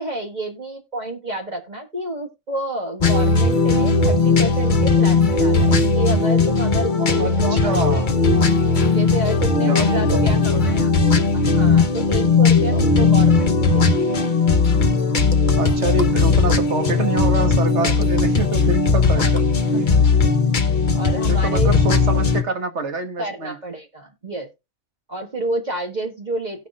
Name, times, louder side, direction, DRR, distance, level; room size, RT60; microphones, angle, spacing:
voice 1, 0.0-8.1 8.9-10.9 11.3-14.3 19.1-19.3 19.7-20.3 20.9-21.8 23.2-24.5 25.1-26.7, right 2 dB, 35° right, 1.8 m, -30 dB
sound 1, 3.0-22.4, left 4 dB, 40° left, 1.1 m, -17 dB
voice 2, 7.0-8.1 9.5-10.7 12.7-12.8 15.5-19.4 21.3-23.6, right 3 dB, 65° right, 1.7 m, -26 dB
17.0 x 5.8 x 2.4 m
omnidirectional pair, 1.3 m